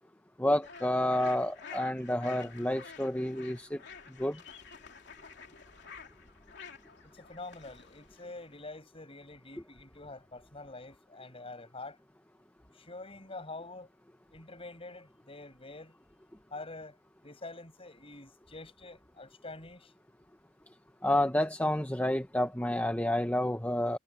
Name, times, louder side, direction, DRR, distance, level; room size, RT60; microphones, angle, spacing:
voice 1, 0.4-3.8 4.2-4.4 21.0-24.0, left 1 dB, 10° left, 1.0 m, -29 dB
sound 1, 0.6-8.7, left 5 dB, 60° left, 3.2 m, -50 dB
voice 2, 7.1-12.0 12.7-13.9 14.3-16.0 16.5-17.0 17.2-19.9, left 2 dB, 30° left, 5.6 m, -46 dB
head